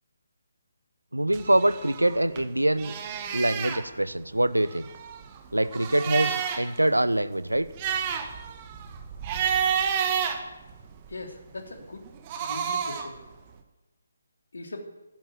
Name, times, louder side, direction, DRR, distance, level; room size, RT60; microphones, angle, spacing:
voice 1, 1.1-2.9 3.3-4.9 5.5-7.7, right 1 dB, 80° right, 16 dB, 0.9 m, -24 dB
sound 1, 1.3-2.4 2.7-3.8 4.6-6.8 7.1-7.2 7.6-11.1 12.1-13.2, right 8 dB, 25° right, 1.7 m, -30 dB
voice 2, 11.1-12.0 12.4-13.2 14.5-14.9, left 2 dB, 60° left, 4 dB, 3.1 m, -39 dB
12.5 x 12.0 x 9.2 m, 1.1 s
figure-of-eight pair, 145°, 0 cm